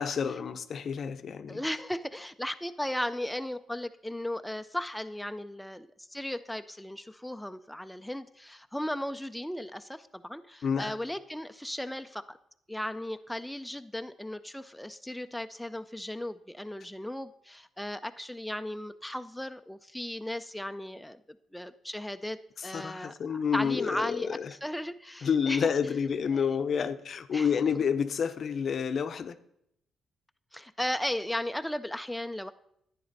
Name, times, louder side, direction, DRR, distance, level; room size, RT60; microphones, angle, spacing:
voice 1, 0.0-1.6 10.6-10.9 22.6-24.5 25.2-29.3, left 6 dB, 55° left, 0.6 m, -29 dB
voice 2, 1.5-12.4 12.7-21.2 21.5-25.7 26.3-26.5 27.3-27.8 30.5-32.5, left 1 dB, 5° left, 0.4 m, -36 dB
11.0 x 9.5 x 4.0 m
cardioid pair, 90°, 0 cm